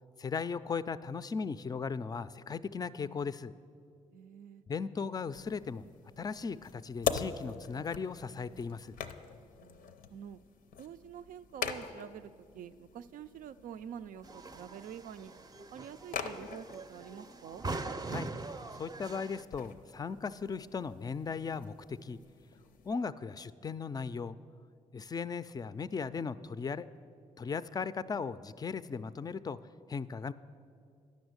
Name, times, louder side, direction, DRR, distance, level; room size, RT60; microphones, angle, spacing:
voice 1, 0.2-3.5 4.7-5.8 6.2-9.0 18.1-18.3 18.8-22.2 22.8-24.4 24.9-26.9 27.4-29.6 29.9-30.3, left 5 dB, 30° left, 15 dB, 0.4 m, -37 dB
voice 2, 4.1-4.6 9.6-10.4 10.8-15.3 15.7-17.7, right 9 dB, 75° right, 13 dB, 0.4 m, -47 dB
sound 1, 5.3-22.9, left 7 dB, 80° left, 0.5 m, -44 dB
sound 2, 14.2-19.4, right 3 dB, 25° right, 0.5 m, -42 dB
10.5 x 6.2 x 8.0 m, 2.3 s
cardioid pair, 65°, 14 cm